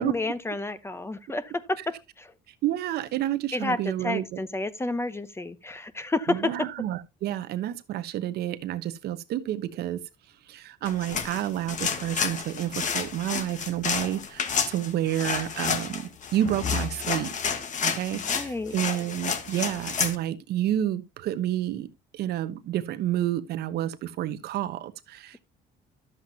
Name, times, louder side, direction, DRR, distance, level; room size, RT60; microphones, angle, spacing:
voice 1, 0.0-2.3 3.5-6.7 18.1-18.7, left 2 dB, 15° left, 0.9 m, -30 dB
voice 2, 2.6-4.4 6.3-10.0 10.5-17.3 17.8-21.9 22.1-25.4, right 12 dB, 70° right, 1.0 m, -30 dB
sound 1, 10.8-20.2, left 6 dB, 45° left, 1.5 m, -30 dB
12.0 x 7.8 x 2.8 m
cardioid pair, 110°, 17 cm